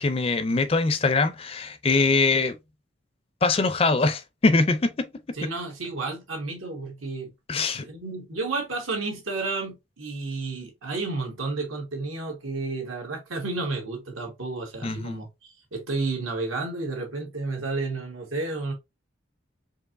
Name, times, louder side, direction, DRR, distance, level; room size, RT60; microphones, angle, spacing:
voice 1, 0.0-2.6 3.4-5.1 5.4-5.5 7.5-7.9 14.8-15.2, left 3 dB, 30° left, 0.4 m, -23 dB
voice 2, 5.3-7.3 7.7-18.7, right 3 dB, 85° right, 1.6 m, -31 dB
4.5 x 2.7 x 2.5 m
head